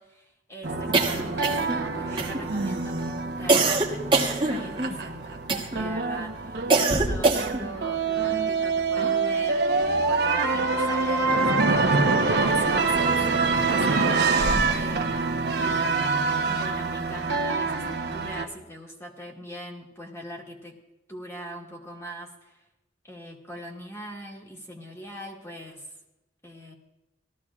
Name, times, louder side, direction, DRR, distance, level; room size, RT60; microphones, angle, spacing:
voice 1, 0.0-16.2 16.4-20.8 21.1-22.6 23.0-25.9 26.4-26.7, equal, 15° left, -1 dB, 1.8 m, -41 dB
sound 1, 0.6-18.5, right 4 dB, 65° right, 1.0 m, -26 dB
sound 2, 0.9-1.8 2.2-2.7 3.5-5.0 5.5-5.9 6.7-7.7, right 3 dB, 25° right, 1.3 m, -23 dB
Splash splatter, 11.2-15.2, right 3 dB, 85° right, 0.9 m, -26 dB
18.0 x 13.5 x 2.4 m, 0.96 s
head